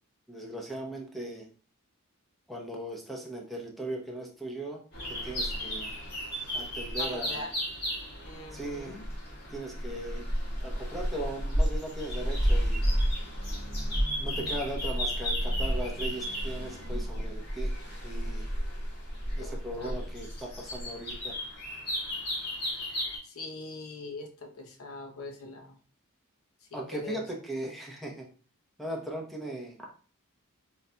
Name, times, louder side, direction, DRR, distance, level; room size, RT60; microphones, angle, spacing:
voice 1, 0.3-1.5 2.5-4.8 5.1-5.9 6.5-7.5 8.5-9.0 9.5-10.3 10.6-12.8 14.2-17.7 18.0-18.4 19.4-21.4 26.7-28.3 28.8-29.8, right 1 dB, ahead, -1 dB, 0.8 m, -38 dB
sound 1, 4.9-23.2, equal, 45° left, 1.9 m, -32 dB
voice 2, 7.0-7.5 8.2-9.1 19.4-20.1 23.2-25.8 26.7-27.3, left 2 dB, 75° left, 3 dB, 0.8 m, -42 dB
4.1 x 4.0 x 2.2 m, 0.40 s
head